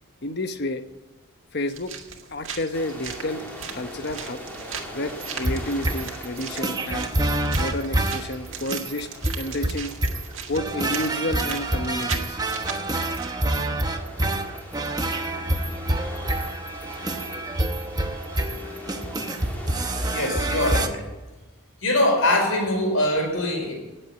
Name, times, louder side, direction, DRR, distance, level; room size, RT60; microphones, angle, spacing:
voice 1, 0.2-0.8 1.5-1.9 2.3-3.4 3.7-4.4 4.9-7.1 7.6-9.1 9.4-9.9 10.5-12.4, left 1 dB, 50° left, 9 dB, 1.1 m, -30 dB
sound 1, 1.7-13.3, right 7 dB, 65° right, 1.9 m, -38 dB
sound 2, 2.7-20.3, equal, 10° left, 3.1 m, -42 dB
sound 3, 5.2-20.9, right 1 dB, 20° right, 0.9 m, -27 dB
voice 2, 20.1-21.1 21.8-23.7, left 1 dB, 70° left, 2 dB, 5.2 m, -22 dB
18.0 x 7.9 x 7.9 m, 1.1 s
head